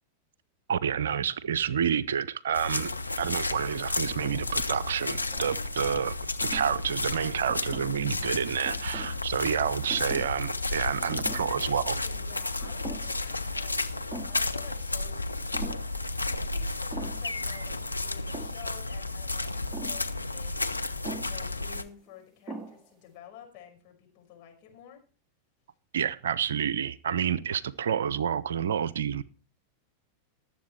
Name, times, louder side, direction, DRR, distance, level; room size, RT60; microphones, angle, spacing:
voice 1, 0.7-2.9 3.2-12.0 25.9-29.2, right 8 dB, 65° right, 0.7 m, -29 dB
sound 1, 2.5-21.8, left 2 dB, 85° left, 0.8 m, -32 dB
sound 2, 4.0-4.6 5.1-5.8 6.4-6.7 7.5-8.2 8.7-9.2 9.9-10.4 10.7-10.8 11.1-11.6 12.0-12.1 12.6-13.3 13.6-13.7 14.1-14.5 15.5-15.9 16.9-17.4 18.3-18.7 19.7-20.1 21.0-21.4 22.1-22.2 22.5-23.0, right 2 dB, 15° right, 2.3 m, -42 dB
voice 2, 10.8-15.8 16.3-20.7 21.0-25.0, left 9 dB, 45° left, 5.5 m, -50 dB
19.0 x 7.7 x 4.6 m
figure-of-eight pair, 90°, 0 cm